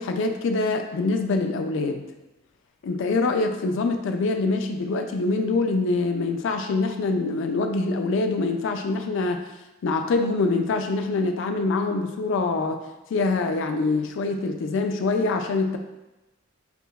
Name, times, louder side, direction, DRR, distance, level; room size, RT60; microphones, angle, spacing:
voice 1, 0.0-2.1 2.8-9.4 9.8-12.8 13.1-15.8, left 3 dB, 65° left, 6 dB, 0.3 m, -24 dB
5.8 x 2.0 x 2.3 m, 1.0 s
head